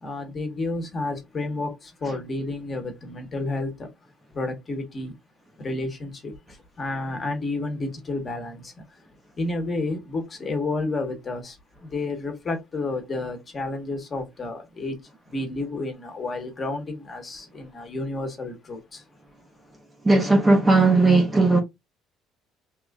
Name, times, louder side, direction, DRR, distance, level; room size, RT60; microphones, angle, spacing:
voice 1, 0.0-3.9 4.3-5.1 5.6-9.0 9.4-15.0 15.3-19.0, left 2 dB, 25° left, 0.9 m, -31 dB
voice 2, 20.0-21.6, right 3 dB, 10° right, 0.5 m, -17 dB
3.0 x 2.4 x 3.4 m
cardioid pair, 170°, 0 cm